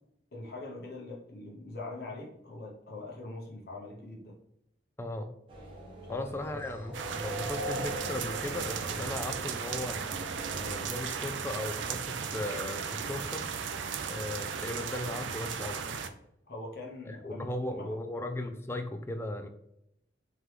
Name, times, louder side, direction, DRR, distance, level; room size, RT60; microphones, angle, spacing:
voice 1, 0.3-4.4 6.0-6.6 16.5-17.9, left 2 dB, 55° left, -2 dB, 0.8 m, -43 dB
voice 2, 5.0-5.3 6.1-10.0 10.5-13.5 14.1-16.0 17.1-19.5, left 1 dB, 15° left, 7 dB, 0.3 m, -37 dB
sound 1, 5.5-10.9, right 1 dB, 30° right, 0.9 m, -41 dB
sound 2, 6.9-16.1, right 6 dB, 80° right, 0.4 m, -36 dB
3.7 x 3.2 x 3.1 m, 0.78 s
head